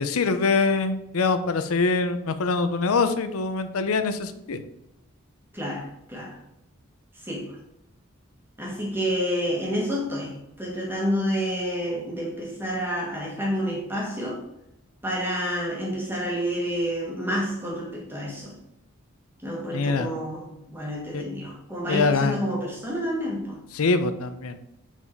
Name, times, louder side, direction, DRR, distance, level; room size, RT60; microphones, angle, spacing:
voice 1, 0.0-4.6 19.7-20.1 21.1-21.2 21.9-22.4 23.7-24.6, left 4 dB, 90° left, 10 dB, 0.6 m, -24 dB
voice 2, 5.5-6.4 7.2-7.6 8.6-14.4 15.0-18.5 19.4-23.6, equal, 10° right, -3 dB, 1.6 m, -29 dB
6.2 x 4.1 x 4.5 m, 0.85 s
head